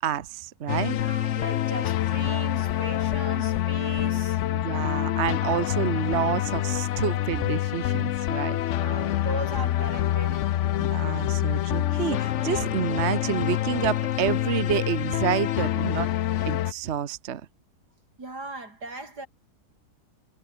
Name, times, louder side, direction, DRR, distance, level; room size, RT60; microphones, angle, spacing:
voice 1, 0.0-1.0 4.5-8.6 10.8-16.1 16.4-17.4, right 9 dB, 50° right, 1.1 m, -29 dB
sound 1, 0.7-16.7, left 12 dB, 65° left, 0.8 m, -26 dB
voice 2, 0.9-4.4 8.8-10.7 18.2-19.3, right 2 dB, 90° right, 6.7 m, -38 dB
omnidirectional pair, 1.7 m